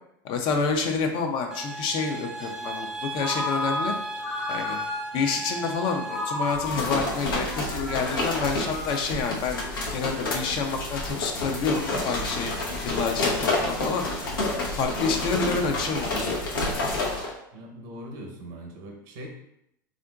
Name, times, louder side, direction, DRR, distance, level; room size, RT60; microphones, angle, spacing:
voice 1, 0.2-2.9 3.1-3.9 4.5-4.8 5.1-9.6 9.9-12.5 12.8-14.0 14.8-16.3, left 5 dB, 50° left, 3 dB, 0.5 m, -28 dB
sound 1, 1.5-6.5, right 2 dB, 5° right, 0.4 m, -35 dB
Ringtone, 3.2-5.2 6.1-9.4, left 2 dB, 70° left, 1.2 m, -33 dB
sound 2, 6.5-17.3, left 2 dB, 90° left, 0.8 m, -29 dB
voice 2, 17.5-19.3, equal, 60° right, 2 dB, 0.8 m, -41 dB
3.6 x 2.5 x 2.3 m, 0.78 s
hypercardioid pair, 100°, 11 cm